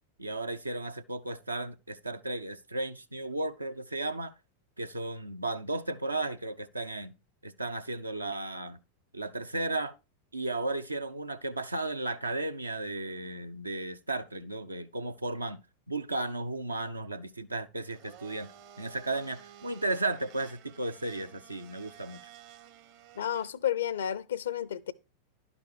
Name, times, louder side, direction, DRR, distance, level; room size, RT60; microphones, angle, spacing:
voice 1, 0.2-4.3 4.8-7.1 7.4-8.8 9.1-9.9 10.3-15.6 15.9-18.5 18.8-22.2, right 2 dB, 80° right, 0.6 m, -34 dB
Domestic sounds home sounds, 17.9-23.5, right 10 dB, 45° right, 0.8 m, -53 dB
voice 2, 23.2-24.9, left 10 dB, 65° left, 0.5 m, -31 dB
11.5 x 5.2 x 4.8 m
figure-of-eight pair, 90°, 0 cm